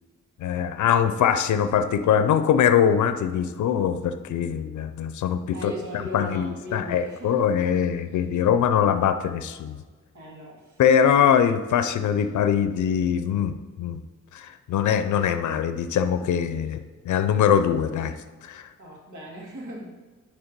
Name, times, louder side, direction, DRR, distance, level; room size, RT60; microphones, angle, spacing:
voice 1, 0.4-9.8 10.8-14.0 14.3-16.8 17.1-18.2 18.4-18.7, left 8 dB, 90° left, 10 dB, 0.5 m, -22 dB
voice 2, 5.5-7.5 10.1-10.8 16.6-16.7 18.8-19.9, equal, 90° right, -2 dB, 2.0 m, -38 dB
9.8 x 3.5 x 5.2 m, 1.3 s
wide cardioid pair, 100°, 29 cm